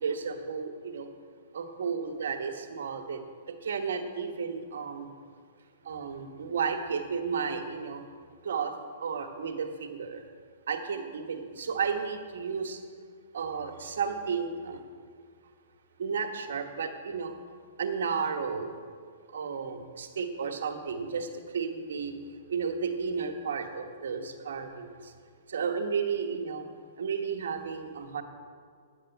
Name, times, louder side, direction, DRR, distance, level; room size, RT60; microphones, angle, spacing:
voice 1, 0.0-1.1 1.5-3.2 3.6-5.1 5.8-8.0 8.4-8.7 9.0-10.2 10.7-12.8 13.3-14.8 16.0-17.4 17.8-18.7 19.3-21.3 21.5-22.1 22.5-24.9 25.5-26.6 27.0-28.2, right 6 dB, 80° right, 5 dB, 1.4 m, -33 dB
9.9 x 7.4 x 9.1 m, 2.1 s
hypercardioid pair, 140°, 0 cm